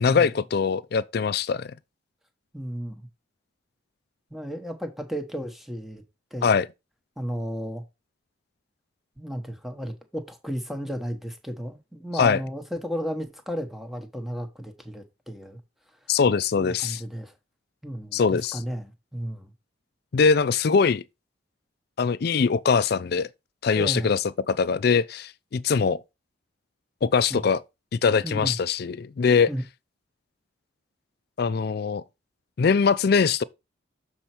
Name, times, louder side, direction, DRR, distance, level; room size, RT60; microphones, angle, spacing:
voice 1, 0.0-1.7 6.4-6.7 12.2-12.4 16.1-17.0 18.1-18.6 20.1-21.0 22.0-23.3 23.6-24.2 24.5-26.0 27.0-27.6 28.0-29.5 31.4-32.0 32.6-33.4, left 5 dB, 50° left, 0.4 m, -22 dB
voice 2, 2.5-3.1 4.3-6.0 6.3-6.6 7.2-7.8 9.2-15.6 16.6-17.3 17.8-19.5 23.8-24.1 27.3-27.5 28.2-28.6 29.5-29.6, equal, ahead, 1.0 m, -33 dB
7.0 x 4.3 x 4.3 m
head